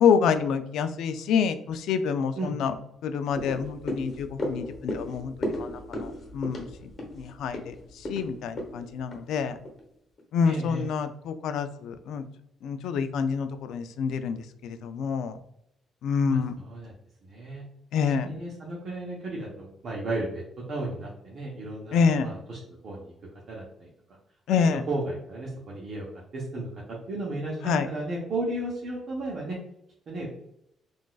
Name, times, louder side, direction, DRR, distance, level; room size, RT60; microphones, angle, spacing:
voice 1, 0.0-2.7 3.0-9.6 10.3-12.2 12.6-15.4 16.0-16.6 17.9-18.3 21.9-22.3 24.5-24.8 27.6-27.9, left 6 dB, 80° left, 9 dB, 0.3 m, -27 dB
sound 1, 3.4-9.8 10.2-10.3, left 1 dB, 45° left, 0.9 m, -36 dB
voice 2, 10.4-10.8 16.3-16.9 17.2-17.6 18.2-20.4 20.7-23.1 23.5-23.9 24.9-26.1 26.3-29.6 30.1-30.3, right 2 dB, 55° right, -4 dB, 0.8 m, -34 dB
3.8 x 2.5 x 2.3 m, 0.77 s
cardioid pair, 90°, 0 cm